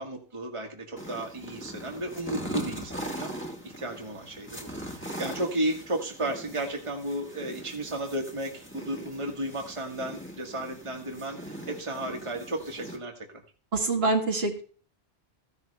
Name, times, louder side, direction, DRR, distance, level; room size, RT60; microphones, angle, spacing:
voice 1, 0.0-13.4, right 1 dB, 30° right, 2 dB, 1.6 m, -34 dB
sound 1, 1.0-13.0, equal, 10° left, 1.7 m, -40 dB
voice 2, 13.7-14.6, right 3 dB, 70° right, 1 dB, 2.1 m, -25 dB
14.5 x 11.0 x 3.3 m, 0.40 s
omnidirectional pair, 1.1 m